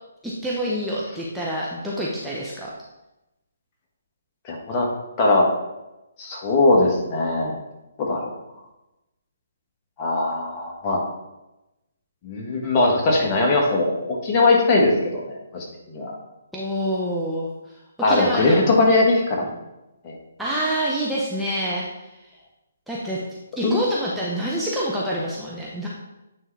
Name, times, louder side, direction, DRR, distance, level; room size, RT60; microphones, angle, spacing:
voice 1, 0.2-2.7 16.5-17.8 18.1-18.6 20.4-22.3 22.9-23.2 23.5-25.9, equal, ahead, -7 dB, 0.8 m, -27 dB
voice 2, 4.5-4.9 5.2-5.5 6.2-7.5 8.0-8.3 10.0-11.0 12.2-16.1 18.0-19.5 20.0-20.2 23.6-23.8, left 2 dB, 30° left, -1 dB, 1.5 m, -20 dB
9.1 x 3.7 x 3.4 m, 0.96 s
hypercardioid pair, 145°, 0 cm